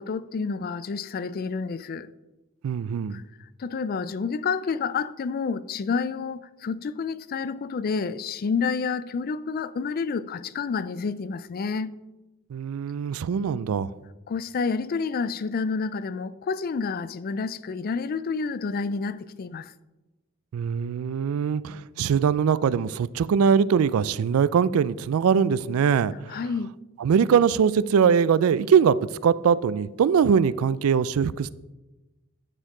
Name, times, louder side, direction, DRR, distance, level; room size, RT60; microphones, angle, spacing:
voice 1, 0.0-2.1 3.1-3.2 3.6-11.9 14.3-19.7 26.3-26.7, left 5 dB, 45° left, 0.3 m, -29 dB
voice 2, 2.6-3.2 12.5-13.9 20.5-26.4 27.0-29.0 29.2-31.5, right 7 dB, 85° right, 0.3 m, -22 dB
9.9 x 6.5 x 3.7 m
head